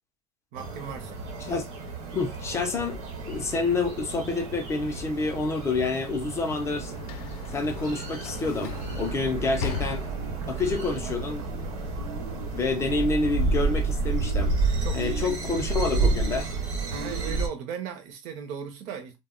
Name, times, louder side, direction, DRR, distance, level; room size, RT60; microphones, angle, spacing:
voice 1, 0.5-1.2 9.2-9.4 14.8-15.6 16.9-19.2, right 7 dB, 40° right, 0.6 m, -37 dB
sound 1, 0.6-17.5, right 3 dB, 60° right, 1.0 m, -31 dB
voice 2, 2.1-6.9 7.5-10.1 10.5-11.5 12.5-14.5 14.9-16.5, left 3 dB, 15° left, 0.3 m, -28 dB
Sliding door / Slam, 6.0-10.7, left 7 dB, 85° left, 0.4 m, -38 dB
sound 2, 8.6-15.4, right 4 dB, 90° right, 0.5 m, -38 dB
2.1 x 2.1 x 3.5 m
supercardioid pair, 160°, 18 cm